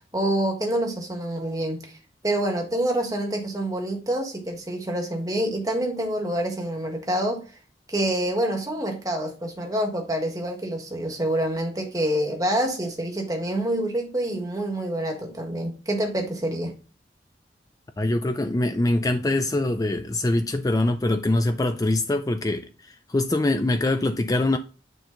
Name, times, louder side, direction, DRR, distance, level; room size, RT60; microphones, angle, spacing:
voice 1, 0.1-1.9 2.2-7.4 7.9-16.7, right 1 dB, 20° right, 1.6 m, -27 dB
voice 2, 18.0-24.6, left 2 dB, 20° left, 0.4 m, -23 dB
9.2 x 4.4 x 3.9 m
head